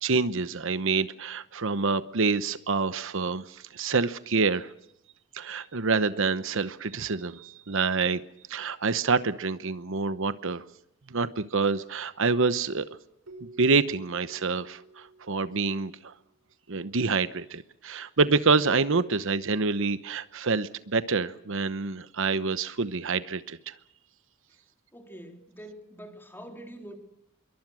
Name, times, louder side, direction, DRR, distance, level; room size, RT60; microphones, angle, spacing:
voice 1, 0.0-4.7 5.3-8.2 8.5-10.6 11.1-13.0 13.4-16.1 16.7-23.7, right 4 dB, 65° right, 13 dB, 1.0 m, -27 dB
Keyboard (musical), 13.3-16.1, right 2 dB, 90° right, 4.2 m, -51 dB
voice 2, 24.9-27.0, right 1 dB, 10° left, 4 dB, 3.7 m, -45 dB
26.5 x 23.0 x 6.3 m, 0.79 s
head